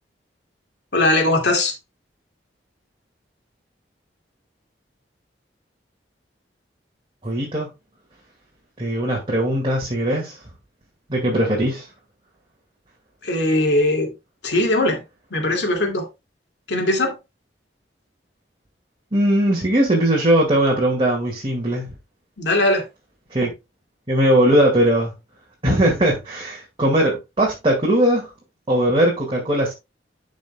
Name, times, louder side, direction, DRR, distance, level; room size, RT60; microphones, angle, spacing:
voice 1, 0.9-1.7 13.2-14.1 14.4-15.0 15.3-16.1 16.7-17.2 22.4-22.9, left 1 dB, 70° left, 2.2 m, -20 dB
voice 2, 7.2-7.7 8.8-10.4 11.1-11.8 19.1-21.9 23.3-23.5 24.1-25.1 25.6-28.3 28.7-29.7, right 1 dB, 30° right, 2.0 m, -19 dB
12.0 x 5.3 x 2.2 m
head